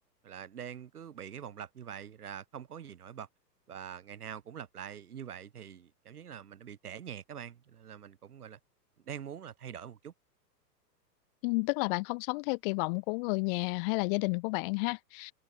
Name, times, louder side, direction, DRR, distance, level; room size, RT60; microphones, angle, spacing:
voice 1, 0.2-3.3 3.7-8.6 9.0-10.1, right 8 dB, 60° right, 7.8 m, -44 dB
voice 2, 11.4-15.3, left 30 dB, 35° left, 1.7 m, -31 dB
figure-of-eight pair, 110°, 50 cm